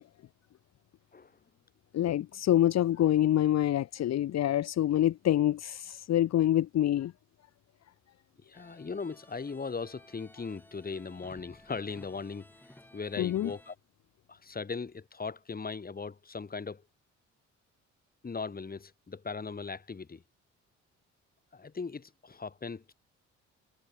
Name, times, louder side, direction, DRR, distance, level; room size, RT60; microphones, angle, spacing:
voice 1, 1.9-7.1 13.2-13.5, left 12 dB, 60° left, 0.9 m, -26 dB
voice 2, 8.5-12.5 12.9-13.7 14.3-16.8 18.2-20.2 21.5-22.9, left 4 dB, 30° left, 4.1 m, -38 dB
sound 1, 8.5-13.8, left 1 dB, 5° left, 6.8 m, -57 dB
cardioid pair, 90°, 30 cm